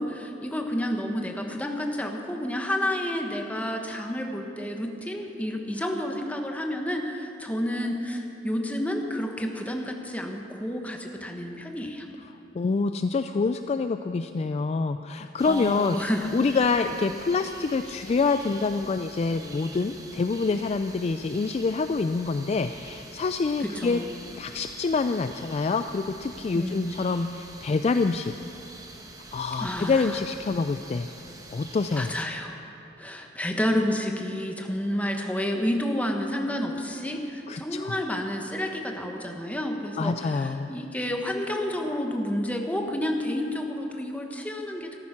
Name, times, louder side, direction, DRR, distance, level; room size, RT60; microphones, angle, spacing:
voice 1, 0.0-12.1 15.4-16.3 23.6-24.1 26.5-27.0 29.6-30.2 31.9-32.6 33.0-45.0, left 1 dB, 10° left, 2 dB, 1.2 m, -30 dB
voice 2, 12.5-16.0 16.3-24.0 24.4-28.3 29.3-31.1 31.5-32.2 37.5-38.0 40.0-40.7, left 4 dB, 35° left, 9 dB, 0.3 m, -26 dB
sound 1, 15.4-32.2, right 2 dB, 20° right, 1.1 m, -45 dB
14.0 x 13.0 x 5.9 m, 2.9 s
head